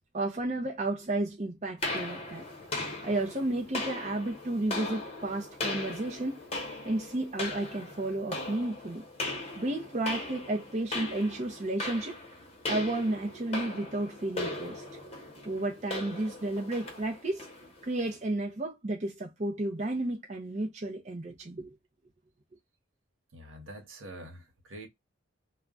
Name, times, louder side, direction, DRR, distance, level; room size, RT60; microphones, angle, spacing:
voice 1, 0.1-2.5 3.0-6.4 6.8-9.0 9.6-12.2 12.7-14.8 15.4-17.5 17.8-21.7, right 2 dB, 35° right, 0.6 m, -32 dB
sound 1, 1.8-18.2, left 2 dB, 30° left, 0.9 m, -38 dB
voice 2, 23.3-24.9, right 1 dB, 85° right, 1.0 m, -45 dB
2.3 x 2.2 x 3.6 m
head